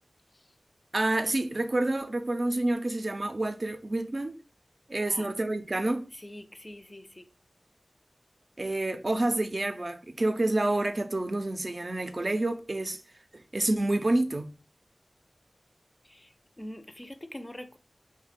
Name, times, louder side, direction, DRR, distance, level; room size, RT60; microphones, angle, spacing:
voice 1, 0.9-4.4 4.9-6.1 8.6-13.0 13.3-14.5, right 2 dB, 50° right, 0.4 m, -28 dB
voice 2, 6.2-7.3 16.1-16.3 16.6-17.8, left 1 dB, 25° left, 0.4 m, -43 dB
3.0 x 2.1 x 4.1 m
wide cardioid pair, 50°, 0 cm